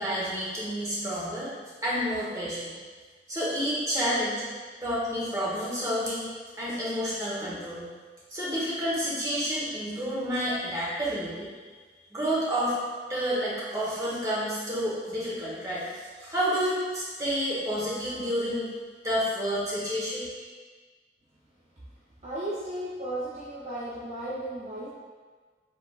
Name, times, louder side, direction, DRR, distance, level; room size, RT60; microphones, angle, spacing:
voice 1, 0.0-1.5 1.8-2.8 3.3-4.4 4.8-6.3 6.6-7.9 8.3-11.5 12.1-12.7 13.1-15.8 16.2-18.7 19.0-20.3, equal, 20° right, -7 dB, 1.1 m, -29 dB
voice 2, 22.2-24.9, right 1 dB, 40° right, -9 dB, 0.6 m, -35 dB
5.3 x 3.5 x 2.4 m, 1.4 s
head